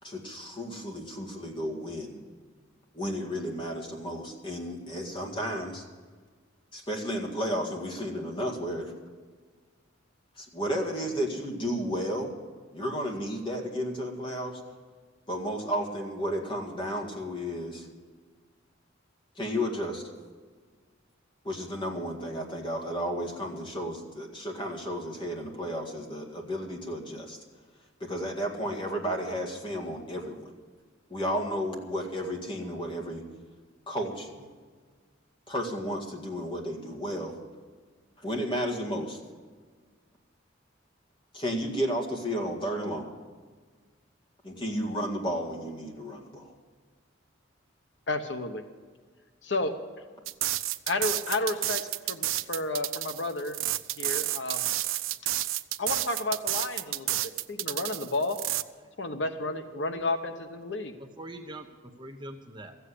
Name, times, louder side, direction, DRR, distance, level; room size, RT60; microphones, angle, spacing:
voice 1, 0.0-2.2 2.9-5.8 6.7-8.9 10.4-12.3 12.7-14.6 15.3-17.9 19.4-20.0 21.4-27.4 28.0-30.5 31.1-33.2 33.9-34.5 35.5-37.4 38.2-39.2 41.3-43.1 44.4-46.5, equal, 25° left, 1 dB, 2.0 m, -33 dB
voice 2, 48.1-48.6 49.4-49.7 50.9-51.8 52.1-53.6 54.0-54.7 55.8-58.4 59.0-60.9, left 2 dB, 60° left, 7 dB, 1.0 m, -31 dB
sound 1, 50.3-58.6, right 15 dB, 85° right, 0.5 m, -30 dB
voice 3, 58.8-59.6 59.9-60.1 61.0-62.8, right 1 dB, 25° right, 5 dB, 0.8 m, -45 dB
14.5 x 8.2 x 9.9 m, 1.5 s
head